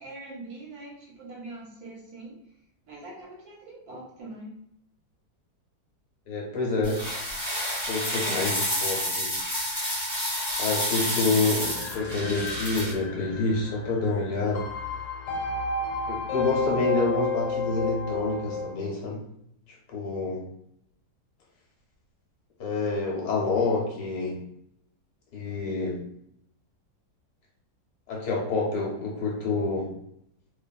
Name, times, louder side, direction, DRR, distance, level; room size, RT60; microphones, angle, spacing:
voice 1, 0.0-2.4 2.9-4.5, right 2 dB, 70° right, -3 dB, 1.0 m, -43 dB
voice 2, 6.3-7.0 7.9-9.3 10.6-14.7 16.1-19.2 19.9-20.4 22.6-24.4 25.3-26.0 28.1-29.9, left 3 dB, 70° left, -3 dB, 1.1 m, -28 dB
sound 1, 6.8-12.9, equal, 20° left, 1.1 m, -29 dB
sound 2, 11.6-18.7, left 3 dB, 90° left, 1.4 m, -31 dB
2.9 x 2.4 x 2.2 m, 0.73 s
omnidirectional pair, 1.9 m